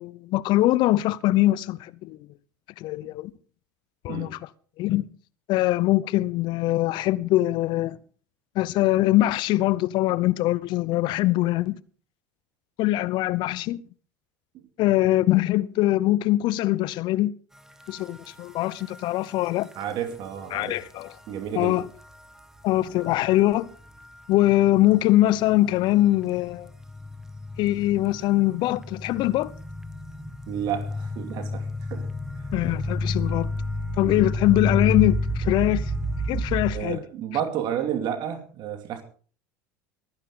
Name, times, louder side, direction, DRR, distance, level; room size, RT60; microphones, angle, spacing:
voice 1, 0.0-2.2 2.8-3.3 4.0-4.4 4.8-5.1 5.5-8.0 8.6-11.8 12.8-13.8 14.8-17.3 17.9-19.7 20.5-21.1 21.5-21.8 22.6-23.7 24.3-26.7 27.6-29.5 32.5-33.5 34.0-35.9 36.3-37.0, left 16 dB, 55° left, 0.8 m, -22 dB
sound 1, 18.0-18.1 18.7-18.8 19.7-19.8 23.0-23.3 24.9-25.0 25.7-36.7, left 1 dB, 5° right, 1.8 m, -30 dB
voice 2, 19.7-20.7 21.3-21.8 30.5-32.1 34.0-34.3 36.7-39.0, right 9 dB, 55° right, 2.5 m, -31 dB
22.5 x 10.0 x 3.8 m
hypercardioid pair, 80°, 9 cm